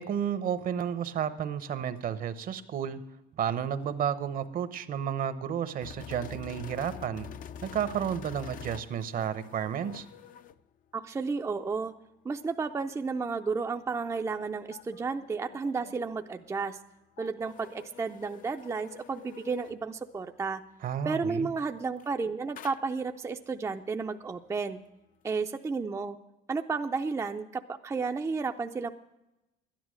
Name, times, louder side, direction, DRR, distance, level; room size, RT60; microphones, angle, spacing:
voice 1, 0.0-3.0 3.3-7.3 7.6-10.1 20.8-21.5, right 8 dB, 55° right, 12 dB, 0.8 m, -32 dB
sound 1, 5.8-10.6 14.7-16.1 17.2-19.8 21.9-22.2 22.6-23.0, left 9 dB, 55° left, 0.5 m, -46 dB
Mallet percussion, 6.4-10.4, left 10 dB, 85° left, 4.2 m, -56 dB
voice 2, 10.9-11.9 12.2-16.8 17.2-20.6 21.0-24.8 25.2-26.2 26.5-28.9, right 4 dB, 20° right, 6 dB, 0.4 m, -32 dB
12.0 x 10.5 x 6.3 m, 0.95 s
cardioid pair, 110°, 17 cm